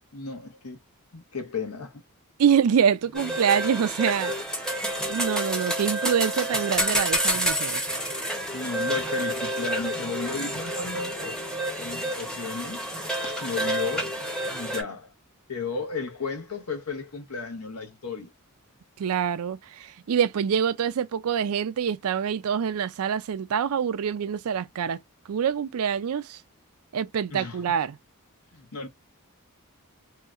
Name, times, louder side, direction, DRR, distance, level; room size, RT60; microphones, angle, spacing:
voice 1, 0.1-0.8 1.1-2.0 3.3-3.4 4.6-4.7 8.5-11.4 11.8-12.9 13.2-14.2 14.5-15.1 15.5-18.3 27.3-27.6 28.5-28.9, left 4 dB, 80° left, 1.0 m, -34 dB
voice 2, 2.4-4.3 5.1-7.8 19.0-25.0 25.3-26.4 26.9-28.0, right 7 dB, 70° right, 0.4 m, -25 dB
sound 1, 3.1-14.8, right 1 dB, 5° left, 0.7 m, -29 dB
3.1 x 2.8 x 2.3 m
head